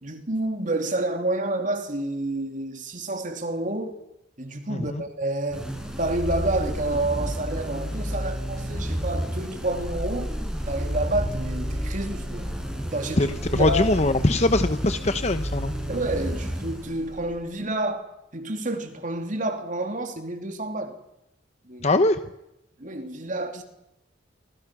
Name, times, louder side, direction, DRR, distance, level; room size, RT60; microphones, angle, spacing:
voice 1, 0.0-4.0 4.4-5.7 6.0-10.3 10.7-12.5 12.9-13.9 15.9-21.0 21.6-22.0 22.8-23.6, right 2 dB, 45° right, 2.9 m, -29 dB
voice 2, 4.7-5.0 13.2-15.7 21.8-22.2, left 2 dB, 35° left, 1.0 m, -22 dB
sound 1, 5.5-17.4, equal, 5° right, 6.8 m, -30 dB
28.5 x 25.0 x 6.1 m
head